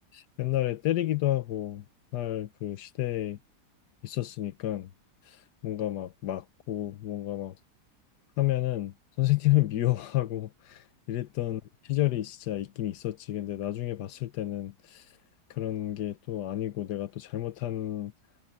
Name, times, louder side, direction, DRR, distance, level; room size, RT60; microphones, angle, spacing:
voice 1, 0.1-1.8 2.1-3.4 4.0-4.9 5.6-7.5 8.4-10.8 11.1-11.6 11.9-15.0 15.6-18.1, left 14 dB, 85° left, 1.4 m, -30 dB
omnidirectional pair, 1.8 m